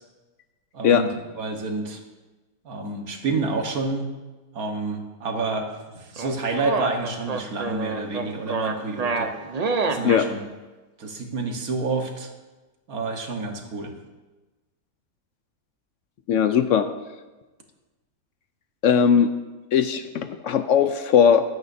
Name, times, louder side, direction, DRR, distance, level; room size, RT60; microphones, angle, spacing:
voice 1, 0.7-2.0 2.6-4.1 4.5-9.3 9.8-10.4 11.0-12.3 12.9-13.9, right 3 dB, 75° right, 3 dB, 1.8 m, -29 dB
sound 1, 6.2-10.2, right 4 dB, 45° right, 0.5 m, -27 dB
voice 2, 16.3-16.9 18.8-19.3 19.7-21.4, left 7 dB, 70° left, 9 dB, 0.8 m, -19 dB
15.0 x 12.0 x 2.7 m, 1.2 s
omnidirectional pair, 1.5 m